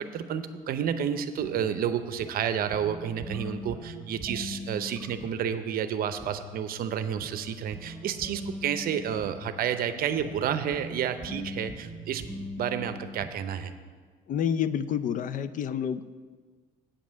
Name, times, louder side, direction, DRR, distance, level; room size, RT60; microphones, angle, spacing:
voice 1, 0.0-12.2 12.6-13.7, right 9 dB, 60° right, 10 dB, 0.7 m, -30 dB
sound 1, 1.4-13.4, left 1 dB, 10° right, 1.4 m, -41 dB
voice 2, 14.3-16.1, left 8 dB, 50° left, 14 dB, 0.4 m, -28 dB
8.5 x 5.4 x 7.3 m, 1.5 s
cardioid pair, 110°, 17 cm